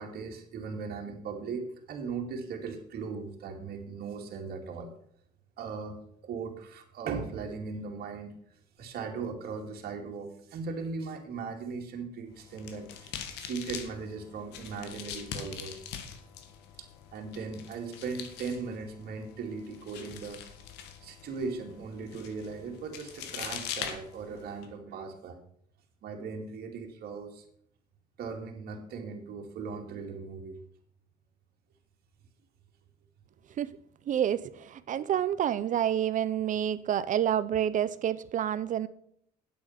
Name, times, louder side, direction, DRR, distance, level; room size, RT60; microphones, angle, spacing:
voice 1, 0.0-4.9 5.6-8.4 8.8-15.9 16.8-20.4 21.0-25.4 26.0-27.4 28.2-30.6, right 5 dB, 65° right, 2.3 m, -38 dB
sound 1, 12.3-24.7, left 8 dB, 90° left, 1.5 m, -43 dB
voice 2, 34.1-38.9, right 10 dB, 50° right, 0.6 m, -28 dB
8.8 x 8.5 x 5.8 m
cardioid pair, 110°, 17 cm